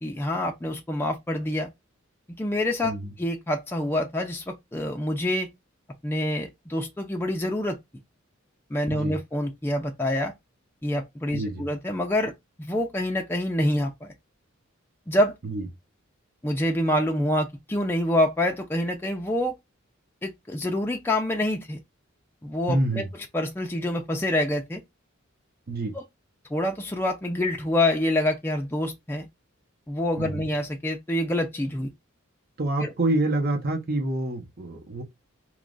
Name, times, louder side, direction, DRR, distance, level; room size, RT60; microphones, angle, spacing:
voice 1, 0.0-1.7 2.4-5.5 6.0-7.8 8.7-10.3 10.8-12.3 12.6-14.1 15.1-15.3 16.4-19.5 20.2-21.8 22.4-23.0 23.3-24.8 25.9-26.0 26.5-29.3 29.9-31.9 32.8-32.9, left 1 dB, 10° left, 0.4 m, -26 dB
voice 2, 11.3-11.6 15.4-15.6 22.7-23.1 25.7-26.0 30.2-30.5 32.6-35.0, right 2 dB, 45° right, 0.9 m, -27 dB
3.0 x 2.4 x 3.8 m
head